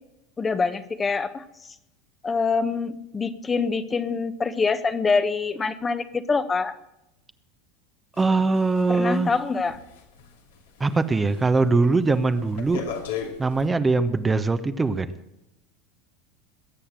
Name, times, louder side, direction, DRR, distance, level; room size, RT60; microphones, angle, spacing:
voice 1, 0.4-1.4 2.2-6.8 8.9-9.8, left 4 dB, 25° left, 10 dB, 1.2 m, -25 dB
sound 1, 8.1-11.0 11.3-11.6 12.0-13.7, left 7 dB, 75° left, 2.5 m, -37 dB
voice 2, 8.2-9.3 10.8-12.9 13.4-15.1, right 3 dB, 20° right, 10 dB, 1.1 m, -22 dB
21.5 x 8.5 x 7.6 m, 0.88 s
hypercardioid pair, 80°, 0 cm